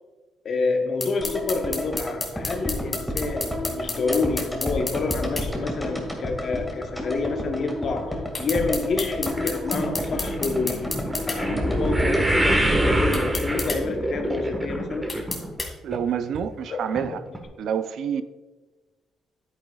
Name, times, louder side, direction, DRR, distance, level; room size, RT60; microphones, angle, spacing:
voice 1, 0.4-15.2 16.7-17.2, left 3 dB, 55° left, 1.0 m, -28 dB
sound 1, 1.0-5.5 8.3-11.4 13.1-13.8 15.1-15.7, left 3 dB, 30° left, 2.2 m, -31 dB
sound 2, 1.2-13.4 13.7-13.8, left 1 dB, ahead, 2.0 m, -32 dB
sound 3, 9.3-15.6 15.9-16.4 17.0-17.1 17.3-17.4, right 1 dB, 15° right, 1.4 m, -25 dB
voice 2, 15.8-17.2 17.6-18.2, right 8 dB, 70° right, 0.5 m, -27 dB
10.0 x 9.1 x 2.3 m
cardioid pair, 90°, 0 cm